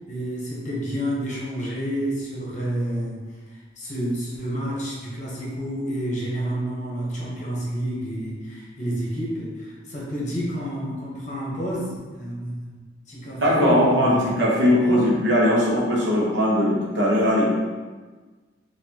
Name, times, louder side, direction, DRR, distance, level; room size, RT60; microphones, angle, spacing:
voice 1, 0.1-3.2 3.5-12.8 13.1-14.4 14.6-15.1, equal, 40° left, -6 dB, 1.0 m, -29 dB
voice 2, 13.4-17.5, equal, 65° right, -4 dB, 0.9 m, -19 dB
4.3 x 2.6 x 2.8 m, 1.4 s
head